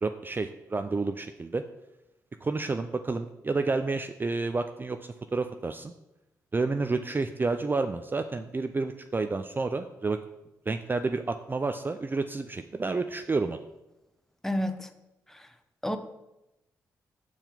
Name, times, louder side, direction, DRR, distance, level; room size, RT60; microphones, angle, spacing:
voice 1, 0.0-1.6 2.4-5.0 5.3-5.9 6.5-10.2 10.7-13.6, right 3 dB, 25° right, 7 dB, 0.4 m, -30 dB
voice 2, 14.4-14.9 15.8-16.0, equal, 5° left, 8 dB, 0.8 m, -29 dB
5.6 x 4.6 x 5.3 m, 0.93 s
hypercardioid pair, 45°, 8 cm